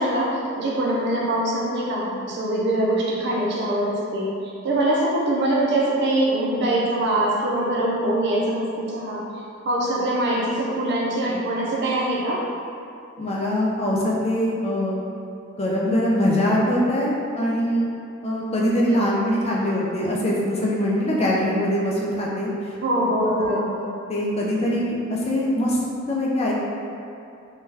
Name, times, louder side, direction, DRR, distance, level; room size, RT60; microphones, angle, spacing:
voice 1, 0.0-4.3 4.6-9.2 9.7-12.4 22.8-23.7, right 1 dB, 60° right, -4 dB, 0.5 m, -23 dB
voice 2, 13.2-15.0 15.6-17.1 17.4-17.9 18.2-22.7 23.3-25.8 26.1-26.5, left 1 dB, 30° left, -4 dB, 0.4 m, -23 dB
3.6 x 2.3 x 2.7 m, 2.6 s
head